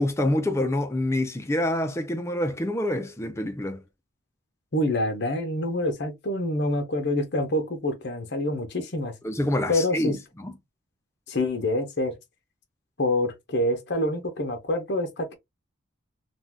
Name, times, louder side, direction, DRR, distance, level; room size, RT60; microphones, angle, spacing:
voice 1, 0.0-3.8 9.2-10.5, left 1 dB, 15° left, 0.3 m, -26 dB
voice 2, 4.7-9.1 9.7-10.2 11.3-12.1 13.0-15.4, left 1 dB, 50° left, 0.7 m, -26 dB
2.6 x 2.2 x 3.3 m
head